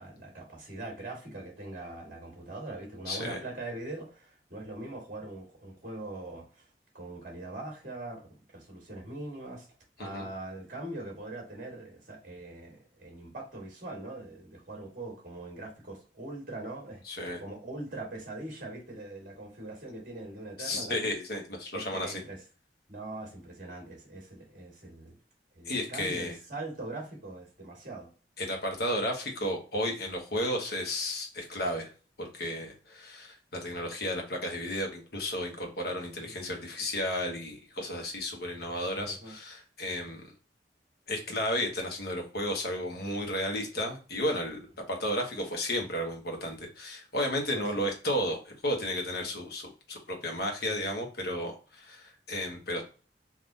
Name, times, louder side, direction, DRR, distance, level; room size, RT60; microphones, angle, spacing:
voice 1, 0.0-6.7 6.9-9.7 10.0-21.1 21.7-22.4 22.9-25.2 25.5-28.1 36.2-36.3 39.0-39.3 47.5-47.9, right 2 dB, 45° right, 1.4 m, -42 dB
voice 2, 3.1-3.4 10.0-10.3 17.1-17.4 20.6-22.2 25.7-26.4 28.4-31.9 32.2-40.3 41.1-52.8, left 1 dB, 60° left, 0.9 m, -33 dB
3.5 x 2.4 x 2.5 m
head